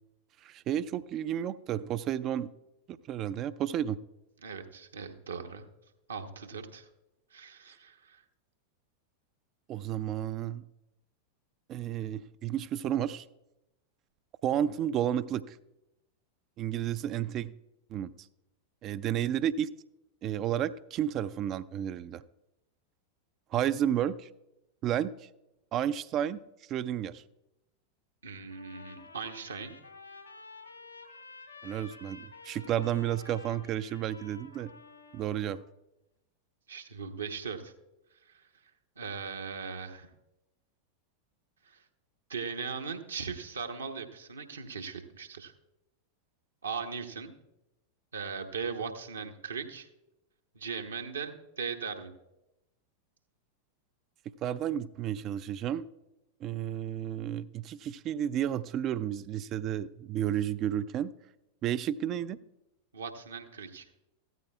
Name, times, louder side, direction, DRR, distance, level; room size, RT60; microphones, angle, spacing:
voice 1, 0.4-2.5 2.9-4.0 9.7-10.6 11.7-13.2 14.4-15.6 16.6-17.5 17.9-18.1 18.8-19.7 20.2-22.2 23.5-24.3 24.8-25.3 25.7-26.4 26.7-27.2 31.6-34.7 35.1-35.6 54.4-55.9 56.4-61.1 61.6-62.4, right 10 dB, 35° right, 13 dB, 0.3 m, -32 dB
voice 2, 4.4-5.6 6.1-6.9 7.3-8.2 28.2-29.8 36.7-37.7 38.2-38.5 39.0-40.1 41.6-41.8 42.3-45.5 46.6-47.3 48.1-49.9 50.5-52.1 62.9-63.9, right 5 dB, 70° right, 4 dB, 1.0 m, -39 dB
Trumpet, 28.5-35.7, left 4 dB, 85° left, 2.8 m, -51 dB
15.5 x 13.5 x 2.3 m, 0.91 s
figure-of-eight pair, 90°, 0 cm